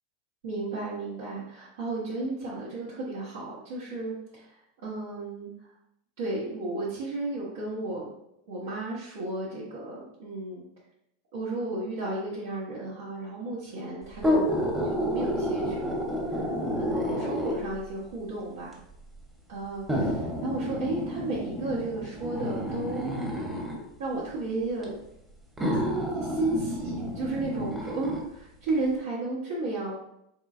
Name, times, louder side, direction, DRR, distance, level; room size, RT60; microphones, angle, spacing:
voice 1, 0.4-5.5 6.2-8.1 8.5-10.6 11.3-18.8 19.5-23.0 24.0-25.0 25.8-29.9, right 2 dB, 85° right, -7 dB, 1.0 m, -33 dB
sound 1, 14.1-17.8 18.7-18.8 19.9-23.8 24.8-24.9 25.6-28.2 28.7-28.8, equal, 5° right, 0.8 m, -30 dB
3.7 x 3.1 x 2.4 m, 0.79 s
supercardioid pair, 125°, 0 cm